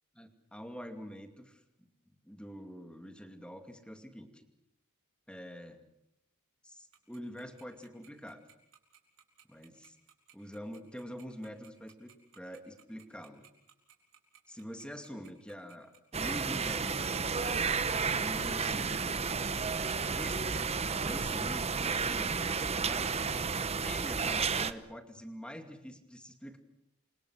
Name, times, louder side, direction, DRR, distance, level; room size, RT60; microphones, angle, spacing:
voice 1, 0.1-1.9 2.2-4.4 5.3-5.8 6.6-8.4 9.5-10.0 10.3-13.4 14.5-17.7 18.1-19.0 20.1-23.2 23.8-26.6, equal, 5° left, 6 dB, 2.5 m, -45 dB
Tick-tock, 6.9-22.0, right 9 dB, 60° right, 5.1 m, -60 dB
sound 1, 16.1-24.7, right 5 dB, 30° right, 0.9 m, -32 dB
28.5 x 25.0 x 6.4 m, 0.81 s
head